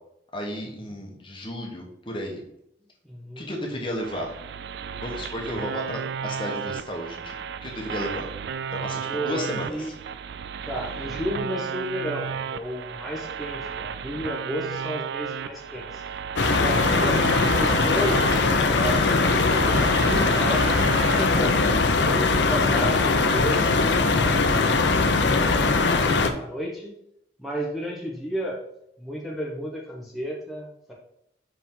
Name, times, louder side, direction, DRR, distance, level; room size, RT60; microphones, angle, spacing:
voice 1, 0.3-2.4 3.4-4.3 5.0-7.4 7.6-8.3 8.7-9.9, equal, 25° left, 0 dB, 1.2 m, -33 dB
voice 2, 3.1-3.5 5.6-5.8 9.1-9.9 10.6-16.0 16.5-19.7 20.0-21.7 22.0-24.9 25.2-26.9 27.4-28.6 29.0-30.9, equal, ahead, -4 dB, 0.9 m, -33 dB
sound 1, 4.0-21.4, right 7 dB, 65° right, 0.3 m, -33 dB
sound 2, 16.4-26.3, left 3 dB, 80° left, 0.7 m, -21 dB
5.6 x 5.0 x 3.8 m, 0.76 s
head